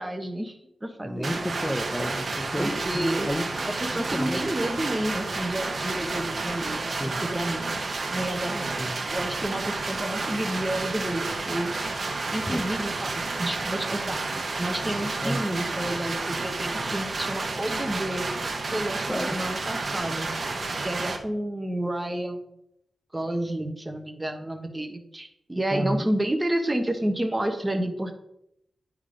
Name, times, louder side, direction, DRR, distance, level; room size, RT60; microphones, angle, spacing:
voice 1, 0.0-1.4 2.6-3.3 3.6-8.7 9.1-11.7 12.3-14.2 14.6-18.3 18.6-20.3 20.8-22.5 23.1-28.2, right 1 dB, 15° right, 5 dB, 1.0 m, -30 dB
voice 2, 1.0-3.4 3.9-4.4 6.9-7.2 8.7-9.0 12.5-12.6 14.8-15.4 19.0-19.4 25.7-26.1, equal, 10° left, 2 dB, 0.5 m, -31 dB
sound 1, 1.2-21.2, right 3 dB, 50° right, 1.1 m, -31 dB
10.0 x 3.7 x 5.0 m, 0.78 s
wide cardioid pair, 140°, 0 cm